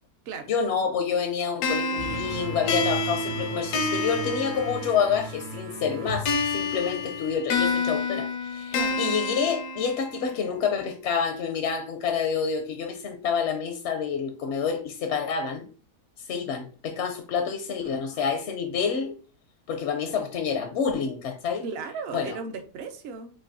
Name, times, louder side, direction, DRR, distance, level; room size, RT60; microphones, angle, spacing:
voice 1, 0.5-15.7 16.3-19.2 19.7-21.6 22.1-22.4, left 6 dB, 60° left, 0.7 m, -28 dB
sound 1, 1.6-5.2 6.3-10.3, left 3 dB, 80° left, 1.3 m, -29 dB
sound 2, 2.0-7.3, right 1 dB, 75° right, 1.3 m, -37 dB
voice 2, 17.8-18.2 21.6-23.3, right 5 dB, 55° right, 0.7 m, -36 dB
7.4 x 2.5 x 2.6 m
omnidirectional pair, 1.7 m